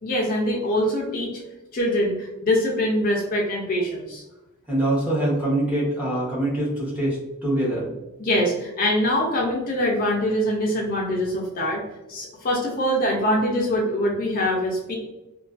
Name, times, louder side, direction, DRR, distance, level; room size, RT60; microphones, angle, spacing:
voice 1, 0.0-1.4 1.7-4.2 8.2-11.8 12.1-14.9, equal, 40° left, -1 dB, 0.4 m, -23 dB
voice 2, 4.7-7.9, right 1 dB, 5° right, -7 dB, 0.8 m, -24 dB
2.4 x 2.2 x 2.4 m, 1.0 s
head